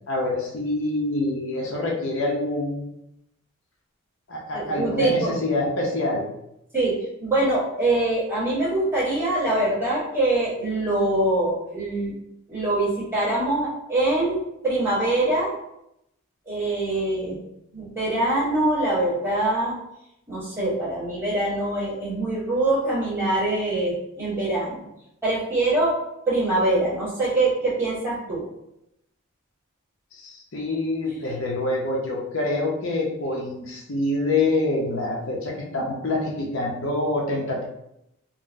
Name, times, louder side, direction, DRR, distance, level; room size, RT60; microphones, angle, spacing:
voice 1, 0.1-2.8 4.3-6.2 30.1-37.6, left 2 dB, 65° left, -2 dB, 0.6 m, -26 dB
voice 2, 4.5-5.3 6.7-6.9 7.2-12.1 12.5-15.5 16.5-17.4 17.7-19.7 20.3-24.8 25.2-25.9 26.3-28.4, right 2 dB, 10° right, -10 dB, 1.5 m, -24 dB
3.8 x 2.1 x 2.6 m, 0.82 s
head